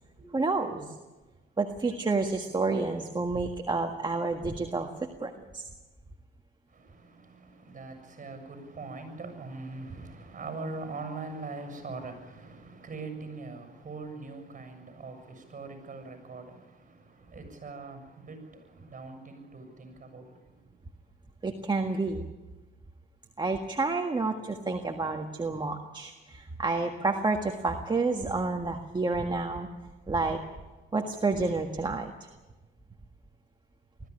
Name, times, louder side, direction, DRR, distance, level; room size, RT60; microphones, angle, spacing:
voice 1, 0.3-0.9 1.6-5.7 21.4-22.3 23.4-29.7 30.1-30.4 30.9-32.3, right 3 dB, 20° right, 3 dB, 1.7 m, -29 dB
voice 2, 7.6-16.5 17.3-18.4 18.7-20.3, right 3 dB, 40° right, 6 dB, 7.0 m, -41 dB
20.0 x 14.5 x 10.0 m, 1.2 s
cardioid pair, 90°, 20 cm